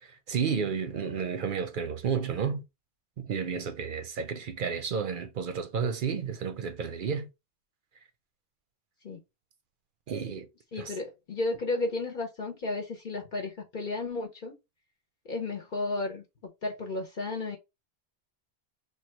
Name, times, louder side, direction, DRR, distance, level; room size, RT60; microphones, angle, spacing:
voice 1, 0.0-2.6 3.2-7.3 10.1-10.5 10.8-10.9, right 6 dB, 60° right, 0.6 m, -31 dB
voice 2, 10.7-14.5 15.2-16.2 16.6-17.6, left 2 dB, 55° left, 0.8 m, -33 dB
3.1 x 2.3 x 4.2 m
omnidirectional pair, 1.1 m